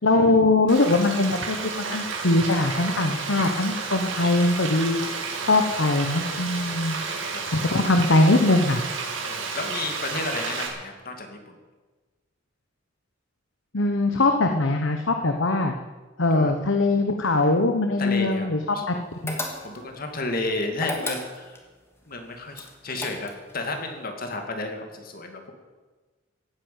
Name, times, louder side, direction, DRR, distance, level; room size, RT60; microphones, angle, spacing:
voice 1, 0.0-5.0 5.5-7.3 7.7-8.8 13.7-15.8 16.2-19.0 19.2-19.4, left 2 dB, 80° left, 5 dB, 1.1 m, -21 dB
Frying (food), 0.7-10.7, right 4 dB, 80° right, 3.2 m, -31 dB
voice 2, 6.7-7.9 9.2-11.5 16.3-16.5 18.0-18.5 18.7-18.8 19.6-21.6 22.1-25.5, left 2 dB, 50° left, 4 dB, 2.6 m, -32 dB
sound 1, 19.3-20.0 20.8-21.7 22.5-23.5, left 2 dB, 15° left, 2.3 m, -32 dB
15.5 x 9.6 x 9.4 m, 1.3 s
head